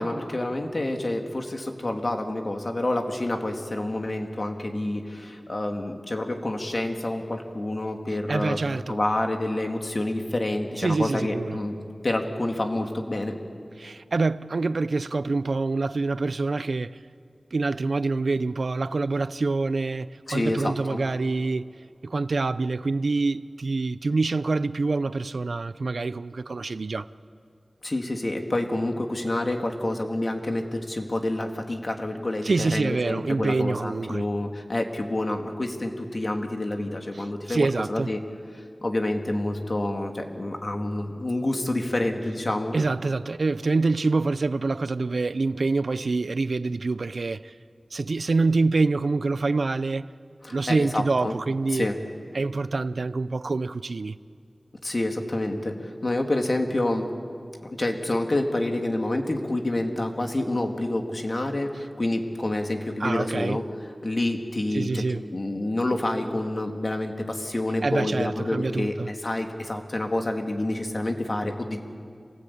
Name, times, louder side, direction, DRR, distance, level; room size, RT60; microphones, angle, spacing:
voice 1, 0.0-8.6 8.9-11.7 12.0-13.4 20.3-21.0 27.8-38.2 38.5-42.7 50.4-51.3 51.7-52.0 54.8-57.1 57.6-63.6 64.0-65.0 65.3-71.8, left 1 dB, 50° left, 2.4 m, -28 dB
voice 2, 8.3-9.0 10.8-11.6 13.8-17.0 17.5-21.6 22.0-27.1 32.4-34.2 37.1-38.1 42.7-47.5 47.9-50.1 50.5-51.9 52.3-54.2 63.0-63.6 64.7-65.2 67.8-69.1, right 3 dB, 80° right, 0.5 m, -26 dB
27.0 x 18.5 x 8.6 m
wide cardioid pair, 55°, 0 cm